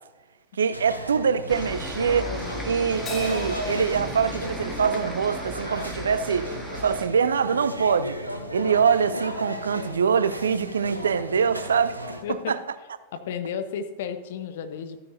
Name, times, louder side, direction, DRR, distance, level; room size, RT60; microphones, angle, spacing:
voice 1, 0.6-2.3 2.6-6.5 6.8-8.2 8.5-12.2 12.5-12.6, right 6 dB, 70° right, 0.4 m, -24 dB
sound 1, 0.7-12.2, equal, 85° right, 0.9 m, -35 dB
sound 2, 1.5-7.1, equal, ahead, 1.5 m, -36 dB
Crash cymbal, 3.1-5.7, equal, 25° left, 1.8 m, -40 dB
voice 2, 12.2-12.6 13.1-15.0, left 7 dB, 55° left, 0.9 m, -32 dB
13.0 x 9.4 x 2.7 m
figure-of-eight pair, 90°, 0 cm